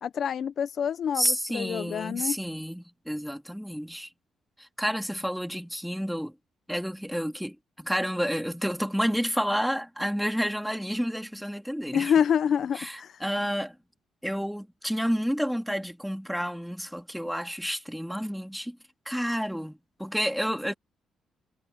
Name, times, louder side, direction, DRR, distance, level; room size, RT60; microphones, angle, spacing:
voice 1, 0.0-2.4 11.9-13.2, left 8 dB, 60° left, 0.6 m, -27 dB
voice 2, 1.1-4.1 4.6-6.3 6.7-12.1 12.7-13.7 14.2-18.8 19.1-20.7, equal, ahead, 3.0 m, -30 dB
cardioid pair, 90°, 0 cm